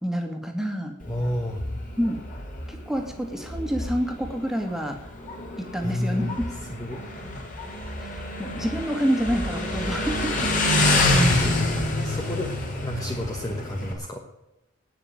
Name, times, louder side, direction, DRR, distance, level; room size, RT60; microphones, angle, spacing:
voice 1, 0.0-1.0 2.0-2.2 2.7-5.0 5.6-6.4 8.0-10.4, equal, ahead, 3 dB, 2.3 m, -28 dB
Motorcycle, 1.0-13.9, left 1 dB, 35° left, 3.9 m, -27 dB
voice 2, 1.1-1.6 5.8-6.4 6.7-7.0 11.1-11.3 12.0-12.5 12.8-14.2, left 1 dB, 15° left, 2 dB, 1.2 m, -30 dB
18.5 x 6.6 x 9.0 m, 0.95 s
head